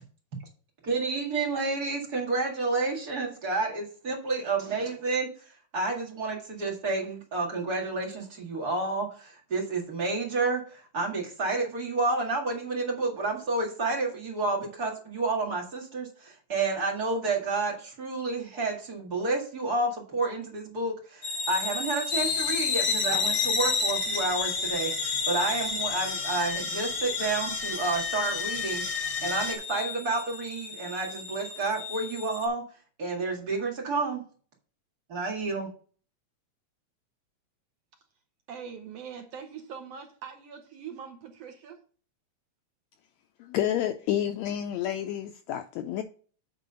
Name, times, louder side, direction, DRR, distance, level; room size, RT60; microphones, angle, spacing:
voice 1, 0.8-5.3 5.7-28.8 29.2-32.6 33.0-34.2 35.1-35.7, right 3 dB, 35° right, 2.1 m, -30 dB
sound 1, 21.2-32.5, left 4 dB, 25° left, 2.1 m, -35 dB
sound 2, 22.1-29.6, left 5 dB, 55° left, 1.3 m, -30 dB
voice 2, 38.5-41.8, right 7 dB, 65° right, 1.7 m, -42 dB
voice 3, 43.4-46.0, left 11 dB, 80° left, 1.7 m, -29 dB
9.1 x 3.8 x 5.4 m
omnidirectional pair, 3.6 m